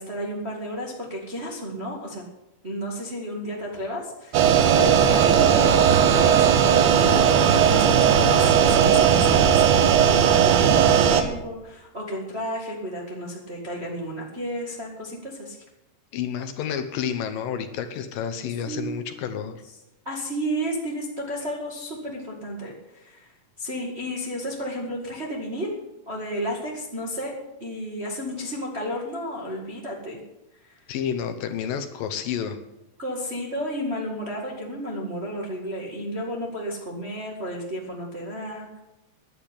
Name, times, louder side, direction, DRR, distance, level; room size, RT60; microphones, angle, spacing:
voice 1, 0.0-2.2 2.6-15.6 18.7-19.1 20.0-23.3 23.6-25.7 26.0-30.2 30.6-30.7 33.0-38.8, equal, 25° right, -2 dB, 1.4 m, -32 dB
sound 1, 4.3-11.2, right 8 dB, 85° right, 3.0 m, -17 dB
voice 2, 16.1-19.6 30.9-32.6, left 8 dB, 75° left, 9 dB, 2.4 m, -30 dB
10.5 x 9.0 x 9.9 m, 0.92 s
omnidirectional pair, 4.3 m